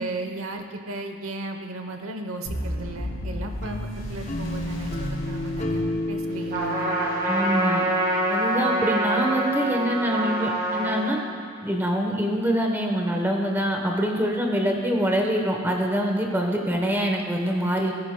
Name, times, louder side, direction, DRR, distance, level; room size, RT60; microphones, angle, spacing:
voice 1, 0.0-7.1, right 2 dB, 90° right, 5 dB, 0.9 m, -35 dB
sound 1, 2.5-6.6, equal, 80° left, 2.7 m, -34 dB
sound 2, 3.6-8.7, left 1 dB, 35° left, 0.6 m, -32 dB
Trumpet, 6.5-11.2, right 1 dB, 45° right, 1.8 m, -25 dB
voice 2, 7.3-7.8 8.3-11.2 11.6-17.9, equal, 10° right, 1 dB, 0.9 m, -25 dB
17.5 x 9.8 x 2.2 m, 2.1 s
head